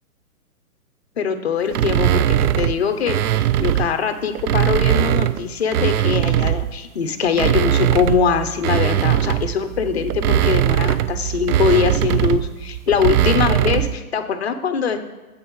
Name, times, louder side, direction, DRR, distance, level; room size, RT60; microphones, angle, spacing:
voice 1, 1.2-15.0, left 6 dB, 45° left, 8 dB, 0.7 m, -22 dB
sound 1, 1.7-3.9 4.3-6.8 7.2-14.0, right 11 dB, 90° right, 0.5 m, -20 dB
11.5 x 8.2 x 3.1 m, 1.1 s
hypercardioid pair, 180°, 44 cm